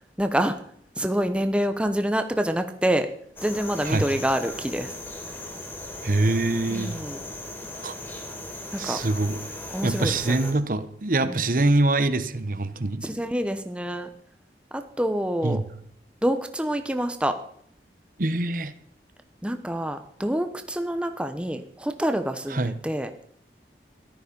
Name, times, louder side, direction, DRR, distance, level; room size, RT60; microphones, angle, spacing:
voice 1, 0.2-0.5 1.0-3.1 3.4-4.9 6.7-7.2 8.7-9.0 9.7-10.5 11.2-11.4 13.0-14.1 14.7-15.6 16.2-17.4 19.4-23.1, equal, 5° right, 0.9 m, -27 dB
sound 1, 3.4-10.5, left 1 dB, 15° left, 2.8 m, -38 dB
voice 2, 6.0-7.0 7.8-8.0 8.8-9.4 9.8-13.0 15.4-15.6 18.2-18.7 22.5-22.8, right 2 dB, 50° right, 1.0 m, -24 dB
14.0 x 12.0 x 5.4 m
head